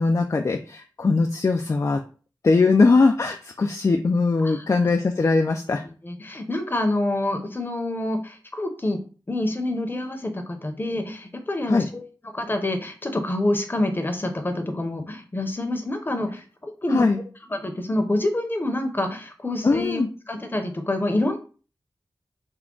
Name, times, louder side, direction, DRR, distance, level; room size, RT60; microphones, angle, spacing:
voice 1, 0.0-2.0 2.4-5.8 11.7-11.9 16.9-17.2 19.6-20.1, left 3 dB, 40° left, 4 dB, 0.3 m, -20 dB
voice 2, 6.0-9.0 9.3-12.0 12.3-17.1 17.5-21.4, left 1 dB, 25° left, 6 dB, 0.7 m, -27 dB
3.5 x 2.2 x 3.7 m, 0.37 s
wide cardioid pair, 65°, 8 cm